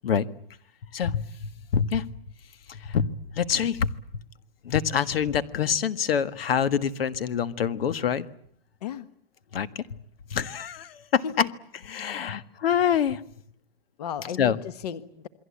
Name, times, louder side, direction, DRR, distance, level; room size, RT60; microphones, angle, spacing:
voice 1, 0.9-2.1 2.7-3.9 4.7-8.3 9.5-9.8 10.3-11.2 11.9-13.2 14.4-14.6, left 8 dB, 75° left, 14 dB, 1.7 m, -26 dB
voice 2, 11.9-12.4 14.0-15.3, left 8 dB, 45° left, 14 dB, 1.2 m, -35 dB
28.0 x 22.5 x 8.6 m, 0.66 s
hypercardioid pair, 180°, 29 cm